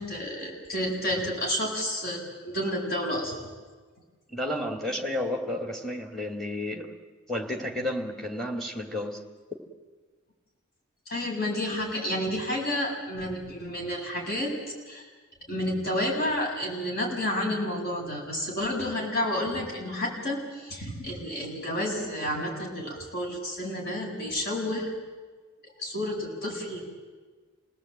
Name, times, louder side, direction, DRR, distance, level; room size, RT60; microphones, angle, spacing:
voice 1, 0.0-3.4 11.1-14.6 14.9-15.1 15.5-24.9 25.8-26.9, left 1 dB, 45° left, -2 dB, 7.4 m, -30 dB
voice 2, 4.3-6.9 7.3-9.2, left 1 dB, ahead, 3 dB, 2.7 m, -31 dB
27.5 x 18.5 x 8.9 m, 1.4 s
head